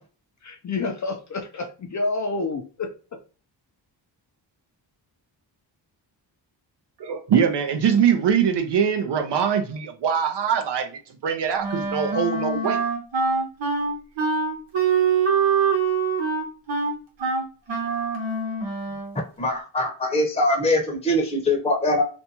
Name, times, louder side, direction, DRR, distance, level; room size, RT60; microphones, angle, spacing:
voice 1, 0.4-2.9, left 3 dB, 40° left, 0.5 m, -28 dB
voice 2, 7.0-12.8, right 7 dB, 65° right, 0.6 m, -22 dB
Wind instrument woodwind instrument, 11.6-19.2, right 5 dB, 80° right, 1.0 m, -24 dB
voice 3, 19.4-22.0, left 1 dB, 15° left, 0.8 m, -22 dB
2.6 x 2.2 x 2.8 m
cardioid pair, 85°, 46 cm